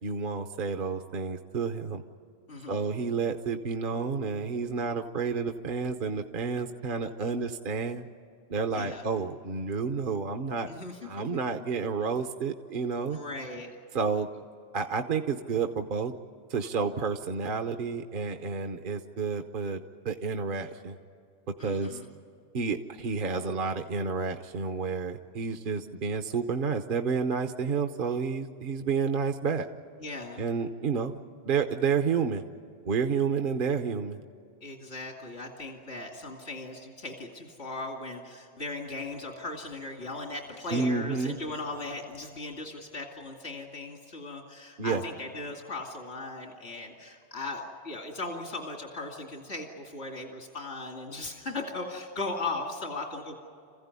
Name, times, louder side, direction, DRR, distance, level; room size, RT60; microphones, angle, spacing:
voice 1, 0.0-2.0 2.7-8.0 8.5-10.7 11.0-13.2 13.9-14.3 14.7-16.1 16.5-21.0 21.6-22.0 22.5-29.7 30.4-31.2 31.4-32.4 32.8-34.2 40.7-41.4 44.8-45.0, right 5 dB, 55° right, 6 dB, 1.1 m, -30 dB
voice 2, 2.5-2.8 8.7-9.1 10.7-11.0 13.1-13.7 21.6-22.1 30.0-30.4 34.6-53.3, left 2 dB, 80° left, 1 dB, 2.8 m, -38 dB
28.0 x 16.0 x 9.7 m, 2.4 s
omnidirectional pair, 1.1 m